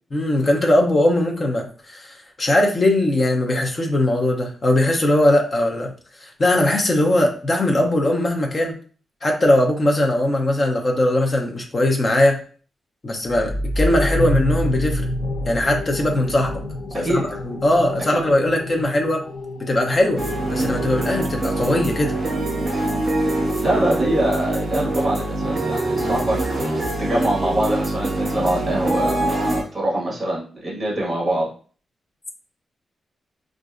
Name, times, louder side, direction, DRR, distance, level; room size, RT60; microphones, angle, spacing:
voice 1, 0.1-5.9 6.2-8.8 9.2-12.4 13.0-15.1 15.5-16.5 16.9-19.2 19.6-22.2, left 1 dB, 30° left, 2 dB, 0.7 m, -20 dB
sound 1, 13.2-22.6, left 1 dB, 65° left, 0.9 m, -28 dB
sound 2, 20.2-29.6, right 1 dB, 35° right, 1.5 m, -24 dB
voice 2, 23.6-26.4 27.0-31.5, right 1 dB, 20° right, -4 dB, 1.5 m, -24 dB
4.0 x 2.5 x 2.5 m, 0.42 s
wide cardioid pair, 160°, 0 cm